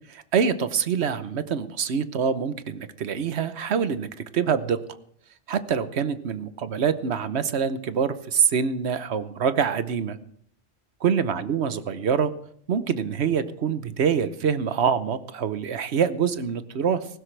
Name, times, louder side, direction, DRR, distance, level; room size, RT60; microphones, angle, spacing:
voice 1, 0.1-5.0 5.5-10.2 11.0-12.3 12.7-17.1, right 7 dB, 70° right, 12 dB, 1.1 m, -25 dB
18.5 x 15.5 x 3.3 m, 0.64 s
omnidirectional pair, 1.2 m